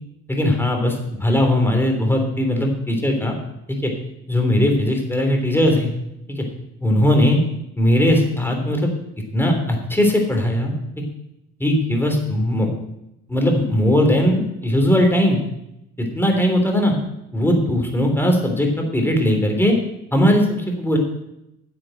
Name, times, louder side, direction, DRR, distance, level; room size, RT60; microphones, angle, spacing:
voice 1, 0.3-0.9 1.2-3.3 3.8-3.9 4.3-5.9 6.3-6.4 6.8-7.4 7.7-8.9 9.3-10.7 11.6-12.7 13.3-15.4 16.0-16.9 17.3-19.7 20.1-21.0, left 1 dB, 5° left, 2 dB, 3.4 m, -19 dB
10.0 x 7.8 x 7.8 m, 0.84 s
cardioid pair, 90°, 30 cm